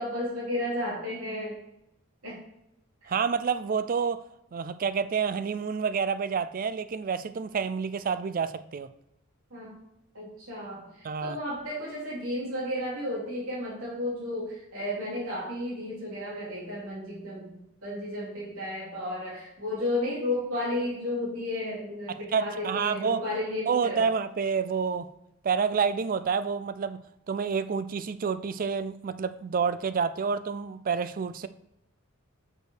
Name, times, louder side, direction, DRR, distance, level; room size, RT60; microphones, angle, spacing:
voice 1, 0.0-1.6 2.2-2.4 3.0-3.1 9.5-9.7 10.1-24.0, left 1 dB, 85° right, -7 dB, 3.1 m, -33 dB
voice 2, 3.1-4.2 4.5-8.9 11.0-11.4 22.1-23.2 23.7-25.1 25.4-27.0 27.3-31.5, right 6 dB, 40° right, 13 dB, 0.4 m, -28 dB
6.4 x 5.2 x 6.5 m, 0.83 s
head